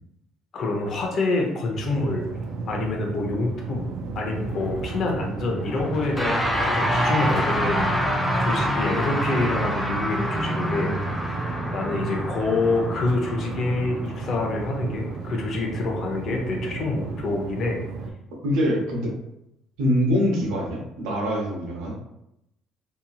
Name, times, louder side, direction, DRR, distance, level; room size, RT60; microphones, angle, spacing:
voice 1, 0.5-2.2 2.7-3.9 4.1-11.1 11.7-17.8, left 3 dB, 50° left, 1 dB, 0.7 m, -27 dB
sound 1, 1.7-18.1, right 4 dB, 70° right, 0.4 m, -34 dB
sound 2, 3.9-10.0, equal, 80° left, 1.1 m, -40 dB
sound 3, 6.1-15.6, equal, ahead, 0.4 m, -27 dB
voice 2, 10.8-11.1 18.4-19.1 19.8-21.9, equal, 90° right, -1 dB, 0.8 m, -24 dB
2.8 x 2.6 x 2.3 m, 0.82 s
cardioid pair, 125°, 0 cm